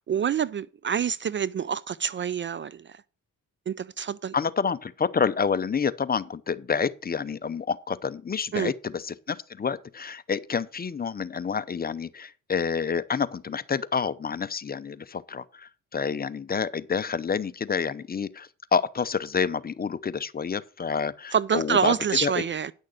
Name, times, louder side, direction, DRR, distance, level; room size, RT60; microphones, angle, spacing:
voice 1, 0.0-3.0 3.7-4.3 8.5-8.7 21.3-22.7, right 7 dB, 35° right, 0.4 m, -27 dB
voice 2, 4.3-21.9 22.2-22.3, left 6 dB, 30° left, 0.7 m, -28 dB
9.8 x 6.5 x 6.4 m
cardioid pair, 90°, 33 cm